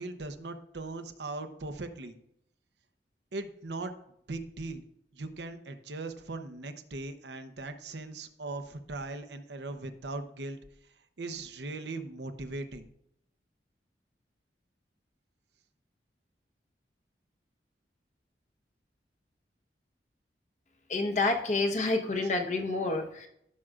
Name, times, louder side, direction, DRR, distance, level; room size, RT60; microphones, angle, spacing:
voice 1, 0.0-2.2 3.3-3.9 4.3-4.8 5.1-10.6 11.2-12.9, right 2 dB, 80° right, 8 dB, 0.8 m, -39 dB
voice 2, 20.9-23.3, left 3 dB, 45° left, 4 dB, 1.0 m, -28 dB
15.5 x 6.3 x 2.5 m, 0.73 s
head